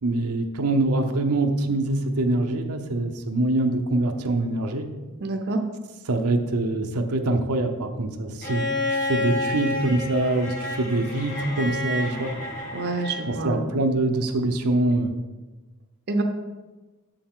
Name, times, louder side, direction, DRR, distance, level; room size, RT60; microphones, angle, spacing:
voice 1, 0.0-4.9 6.1-8.6 8.9-12.3 13.3-15.1, right 2 dB, 85° right, 5 dB, 0.8 m, -24 dB
voice 2, 5.2-5.6 12.7-13.7 16.1-16.2, right 2 dB, 45° right, 5 dB, 0.6 m, -27 dB
Bowed string instrument, 8.4-13.5 14.9-15.0, left 2 dB, 35° left, 1.3 m, -30 dB
7.1 x 6.9 x 3.8 m, 1.2 s
head